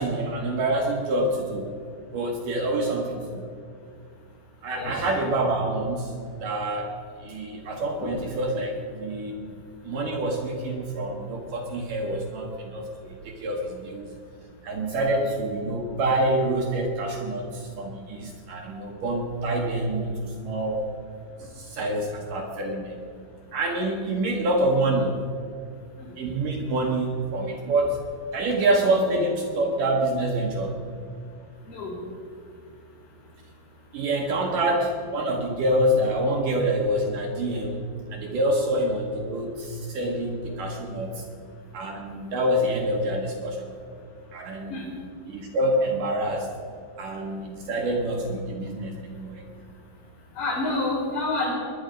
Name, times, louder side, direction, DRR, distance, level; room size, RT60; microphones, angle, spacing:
voice 1, 0.0-1.7 2.1-3.4 4.6-6.1 6.4-6.9 7.2-9.5 9.8-14.1 14.6-20.9 21.4-23.0 23.5-25.2 26.2-28.0 28.3-30.8 33.9-41.2 41.7-43.7 44.3-44.8 45.3-46.5 47.0-49.4, right 1 dB, 65° right, 0 dB, 2.3 m, -26 dB
voice 2, 50.3-51.5, left 2 dB, 75° left, -10 dB, 7.0 m, -28 dB
21.5 x 10.5 x 5.2 m, 2.3 s
omnidirectional pair, 5.1 m